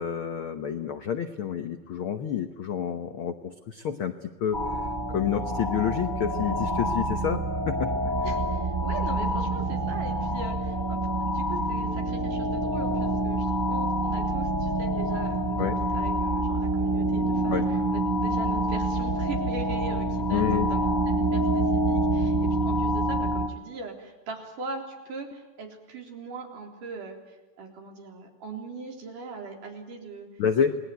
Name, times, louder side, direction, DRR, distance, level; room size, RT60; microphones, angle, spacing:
voice 1, 0.0-4.8 5.1-7.9 15.6-15.7 17.5-17.7 20.3-20.7 30.4-30.7, left 8 dB, 75° left, 8 dB, 1.2 m, -29 dB
sound 1, 4.5-23.5, right 1 dB, 30° right, 0.3 m, -27 dB
voice 2, 8.2-30.3, right 4 dB, 70° right, 2 dB, 5.2 m, -40 dB
28.5 x 20.0 x 9.3 m, 1.1 s
omnidirectional pair, 3.9 m